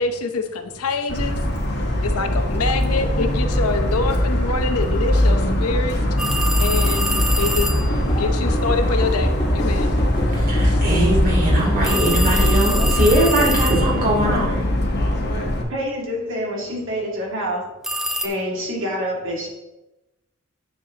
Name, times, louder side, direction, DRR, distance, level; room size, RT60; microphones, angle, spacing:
voice 1, 0.0-1.4 2.0-6.0 6.6-7.1 7.4-9.9 10.6-10.8, left 3 dB, 85° left, 7 dB, 0.8 m, -25 dB
Motor vehicle (road) / Siren, 1.1-15.6, left 1 dB, 50° left, 1.4 m, -21 dB
sound 1, 6.2-7.9 11.8-14.1 17.8-18.3, equal, ahead, 0.5 m, -25 dB
sound 2, 7.7-13.2, equal, 20° left, 1.8 m, -24 dB
voice 2, 10.5-14.5, right 1 dB, 40° right, -3 dB, 3.0 m, -21 dB
voice 3, 14.2-14.6 15.7-17.6 18.2-19.5, equal, 65° right, -2 dB, 2.3 m, -27 dB
9.7 x 6.8 x 2.9 m, 0.98 s
head